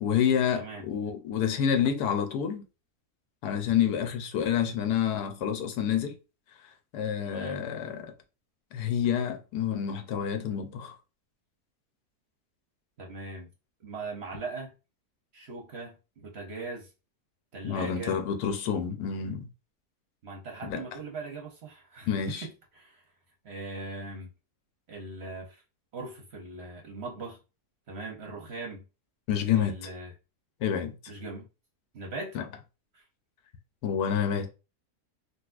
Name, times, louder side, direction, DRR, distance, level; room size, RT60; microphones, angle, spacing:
voice 1, 0.0-2.6 3.4-6.2 6.9-8.1 8.7-11.0 17.6-19.5 20.6-20.8 22.1-22.5 29.3-29.7 30.6-31.0 32.3-32.4 33.8-34.5, left 8 dB, 85° left, 1.2 m, -28 dB
voice 2, 7.2-7.6 13.0-13.5 13.8-14.7 15.3-16.9 17.5-18.2 20.2-23.0 23.4-24.3 24.9-25.6 25.9-27.4 27.9-28.8 29.5-30.1 31.1-31.5 31.9-32.4 32.9-33.0, right 3 dB, 55° right, 0.8 m, -40 dB
3.9 x 2.3 x 2.4 m
omnidirectional pair, 1.7 m